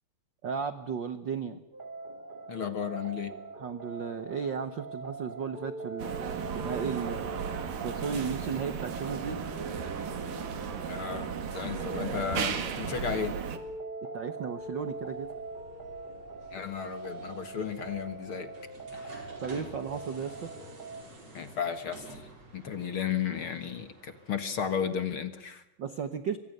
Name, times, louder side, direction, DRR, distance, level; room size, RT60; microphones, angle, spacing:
voice 1, 0.4-1.6 3.6-7.3 7.8-9.4 14.1-15.3 19.4-20.5 25.8-26.4, right 6 dB, 70° right, 11 dB, 1.1 m, -35 dB
sound 1, 1.7-21.0, right 2 dB, 15° right, 2.4 m, -42 dB
voice 2, 2.5-3.3 10.9-13.4 16.5-18.5 18.9-19.2 21.3-22.2 22.5-25.6, left 7 dB, 45° left, 10 dB, 2.1 m, -34 dB
sound 2, 6.0-13.6, right 7 dB, 90° right, 3.9 m, -35 dB
sound 3, 14.5-25.2, right 2 dB, 50° right, 6.5 m, -51 dB
26.0 x 24.5 x 6.7 m, 0.90 s
omnidirectional pair, 3.8 m